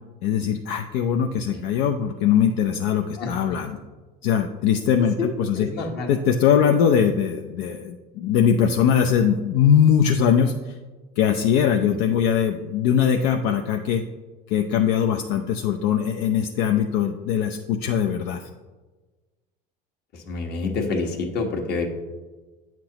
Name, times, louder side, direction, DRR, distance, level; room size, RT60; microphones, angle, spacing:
voice 1, 0.2-3.8 4.2-5.7 6.1-10.5 11.2-14.0 14.5-18.4, left 8 dB, 75° left, 4 dB, 0.5 m, -21 dB
voice 2, 3.2-3.7 5.2-5.3 5.6-6.1 11.9-12.0 20.1-21.9, left 4 dB, 55° left, 2 dB, 1.4 m, -28 dB
9.1 x 6.0 x 2.9 m, 1.3 s
supercardioid pair, 100°, 21 cm